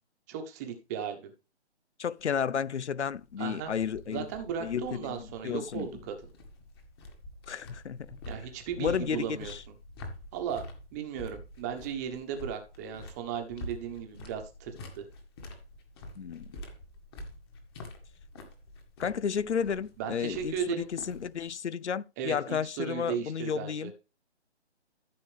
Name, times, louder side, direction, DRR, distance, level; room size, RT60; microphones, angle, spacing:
voice 1, 0.3-1.3 3.4-3.7 4.1-6.2 8.2-9.7 10.3-10.6 10.9-15.1 20.0-20.9 22.2-23.9, right 8 dB, 15° right, 1.2 m, -36 dB
voice 2, 2.0-4.3 4.6-5.9 7.5-8.2 8.8-9.6 16.2-16.5 19.0-23.9, left 7 dB, 90° left, 0.7 m, -32 dB
sound 1, 2.2-21.5, left 1 dB, 20° left, 1.9 m, -47 dB
14.0 x 6.8 x 3.4 m
hypercardioid pair, 160°, 33 cm